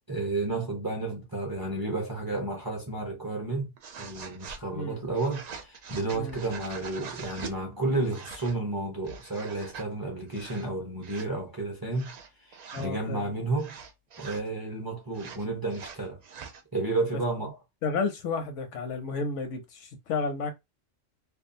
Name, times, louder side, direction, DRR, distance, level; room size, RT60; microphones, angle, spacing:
voice 1, 0.1-3.7 4.0-12.1 12.5-13.8 14.2-16.2 16.7-17.5, right 2 dB, 25° right, 0.6 m, -31 dB
sound 1, 3.8-4.6 5.1-7.6 8.0-8.6 9.0-9.8 10.3-10.7 11.0-11.3 11.9-12.9 13.6-14.5 15.1-16.6, right 6 dB, 85° right, 0.3 m, -43 dB
voice 2, 4.7-5.0 6.1-6.4 12.7-13.3 17.8-20.5, left 4 dB, 80° left, 1.0 m, -32 dB
2.6 x 2.3 x 2.6 m
omnidirectional pair, 1.3 m